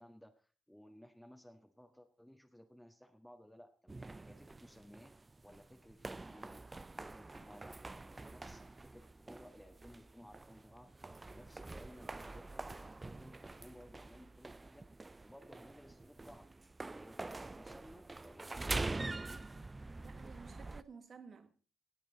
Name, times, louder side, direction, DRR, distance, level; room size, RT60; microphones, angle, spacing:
voice 1, 0.0-5.1 5.4-11.0 11.3-14.9 15.2-16.7 16.9-19.3, equal, 5° left, 1.5 m, -58 dB
sound 1, 3.9-20.8, right 2 dB, 20° right, 0.5 m, -46 dB
voice 2, 20.0-21.5, right 5 dB, 45° right, 1.7 m, -54 dB
18.0 x 8.7 x 4.0 m
figure-of-eight pair, 40°, 0 cm